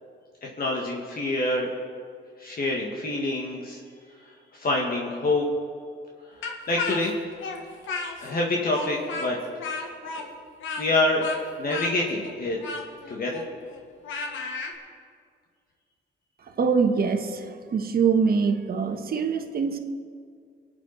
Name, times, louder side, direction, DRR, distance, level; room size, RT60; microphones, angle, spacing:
voice 1, 0.6-1.7 2.4-3.8 4.5-5.4 6.7-7.1 8.2-9.4 10.1-10.3 10.8-11.3 11.6-12.6 13.1-13.4, left 2 dB, 50° left, -1 dB, 1.9 m, -26 dB
Speech, 6.4-8.4 8.7-14.7, left 4 dB, 80° left, 1.6 m, -34 dB
voice 2, 16.6-19.8, right 5 dB, 50° right, 6 dB, 1.4 m, -24 dB
23.5 x 8.6 x 4.1 m, 2.2 s
cardioid pair, 90°, 20 cm